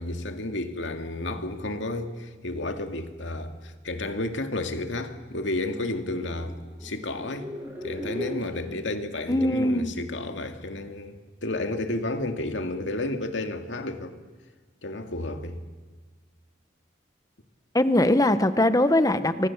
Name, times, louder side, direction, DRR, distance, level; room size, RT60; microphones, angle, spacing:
voice 1, 0.0-7.5 7.8-14.2 14.8-15.6, left 2 dB, 90° left, 2.3 m, -32 dB
sound 1, 5.7-8.6, left 1 dB, 10° right, 7.1 m, -38 dB
voice 2, 9.3-10.0 17.7-19.5, left 1 dB, 20° left, 1.2 m, -21 dB
28.5 x 24.5 x 7.3 m
head